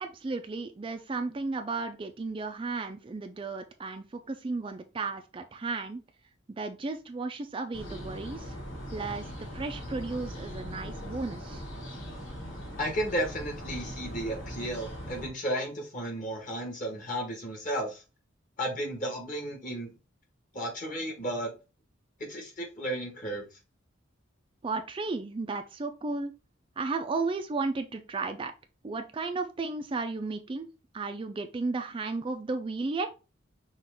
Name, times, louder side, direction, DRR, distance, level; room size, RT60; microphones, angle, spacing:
voice 1, 0.0-6.0 6.5-8.6 8.9-9.3 9.5-11.6 24.6-26.3 26.8-28.5 28.8-30.7 30.9-33.1, right 3 dB, 25° right, 0.4 m, -34 dB
sound 1, 7.7-15.3, equal, 70° left, 1.9 m, -40 dB
voice 2, 12.8-18.0 18.6-19.9 20.5-21.5 22.2-23.5, right 1 dB, 40° left, 1.6 m, -33 dB
5.9 x 2.4 x 3.6 m
head